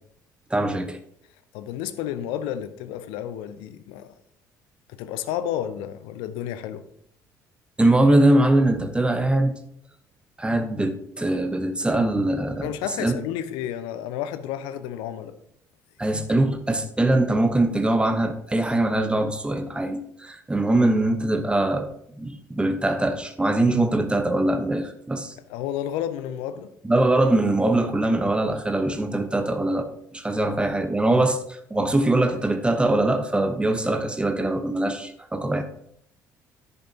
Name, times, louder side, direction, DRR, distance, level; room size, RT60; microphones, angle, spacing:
voice 1, 0.5-1.0 7.8-9.6 10.4-12.7 13.0-13.2 16.0-21.9 22.2-25.3 26.8-35.6, right 1 dB, 10° right, 1.1 m, -22 dB
voice 2, 1.5-4.1 4.9-6.9 12.6-15.4 25.5-26.7 31.2-31.3, left 10 dB, 65° left, 0.6 m, -31 dB
10.5 x 8.2 x 2.9 m
figure-of-eight pair, 50°, 9 cm